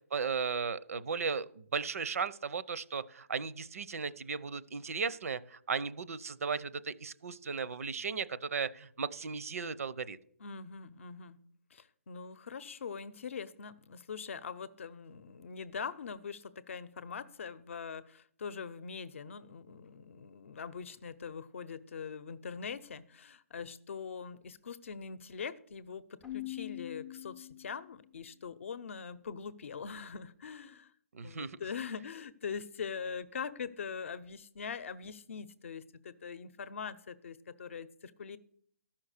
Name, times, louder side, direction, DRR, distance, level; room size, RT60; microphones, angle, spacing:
voice 1, 0.1-10.2 31.1-31.5, right 5 dB, 65° right, 0.6 m, -36 dB
voice 2, 10.4-11.4 11.7-30.9 31.2-38.4, left 6 dB, 55° left, 0.7 m, -42 dB
Keyboard (musical), 26.2-28.1, left 16 dB, 5° left, 0.4 m, -43 dB
13.5 x 5.8 x 6.5 m
hypercardioid pair, 165°, 8 cm